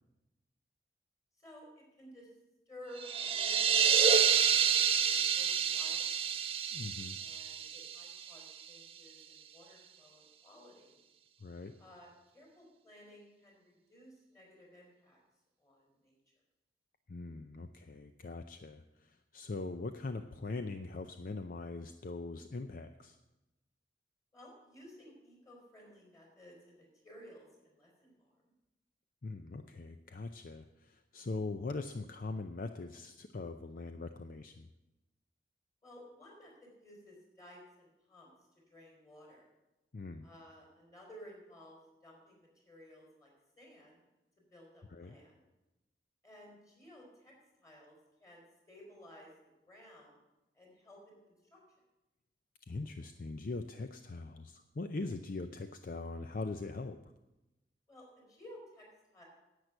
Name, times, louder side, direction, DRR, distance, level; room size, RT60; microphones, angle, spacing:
voice 1, 1.4-2.3 2.7-6.3 7.1-10.9 11.8-15.2 15.6-16.2 24.3-28.3 35.8-38.3 38.7-39.5 40.2-43.3 43.6-44.0 44.5-45.4 46.2-47.3 47.6-49.3 49.6-50.1 50.6-51.6 57.9-59.2, equal, 20° left, -2 dB, 4.2 m, -56 dB
sound 1, 3.0-8.6, right 7 dB, 35° right, 0.7 m, -29 dB
voice 2, 6.7-7.2 11.4-11.8 17.1-23.2 29.2-34.7 39.9-40.3 44.9-45.2 52.7-57.1, left 3 dB, 50° left, 8 dB, 0.5 m, -41 dB
10.5 x 8.2 x 7.8 m, 0.99 s
head